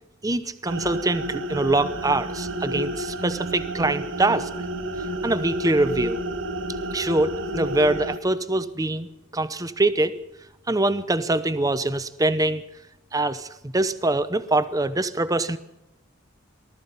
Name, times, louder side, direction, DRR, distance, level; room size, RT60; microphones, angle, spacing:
voice 1, 0.2-4.5 5.2-6.2 6.9-9.1 9.3-10.2 10.7-12.6 13.1-15.6, right 2 dB, 20° right, 13 dB, 0.8 m, -24 dB
sound 1, 0.7-8.2, right 1 dB, 70° right, 1.5 m, -31 dB
19.0 x 13.5 x 5.6 m, 0.92 s
head